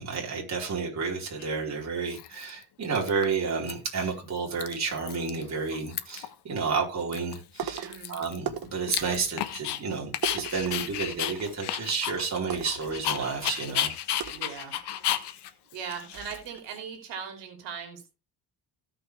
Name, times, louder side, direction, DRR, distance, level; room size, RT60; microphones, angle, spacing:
voice 1, 0.0-13.9, right 5 dB, 40° right, -1 dB, 4.4 m, -31 dB
Dog, 1.4-1.5 2.1-2.6 2.9-3.7 4.0-4.1 4.4-5.4 5.7-6.3 6.7-6.8 7.1-9.8 10.1-16.8, left 11 dB, 70° left, 1.2 m, -33 dB
sound 1, 7.6-8.1 8.5-9.3 10.2-11.8 12.1-12.2 12.5-13.5 14.2-15.2 15.7-15.8 16.1-16.6, right 8 dB, 60° right, 1.4 m, -38 dB
voice 2, 7.8-8.2 14.3-14.8 15.7-18.1, right 6 dB, 85° right, 4 dB, 3.0 m, -39 dB
17.0 x 5.9 x 3.4 m, 0.29 s
cardioid pair, 130°, 42 cm